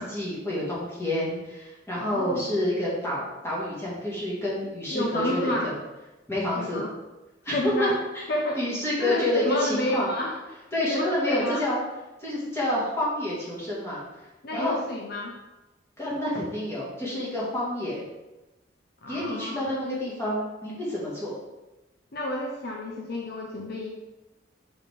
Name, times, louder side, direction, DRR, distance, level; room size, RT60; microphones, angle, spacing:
voice 1, 0.0-5.7 6.3-6.8 7.4-8.2 8.5-10.1 10.7-11.8 12.2-14.0 14.5-14.8 16.0-18.0 19.1-21.3, left 1 dB, 15° left, -7 dB, 2.0 m, -28 dB
voice 2, 2.0-2.4 4.9-5.7 6.6-6.9 7.5-8.0 8.3-8.6 9.0-10.4 10.9-11.6 14.4-15.4 19.0-19.6 22.1-23.9, left 1 dB, 55° left, 0 dB, 0.6 m, -30 dB
5.4 x 5.0 x 3.7 m, 1.0 s
head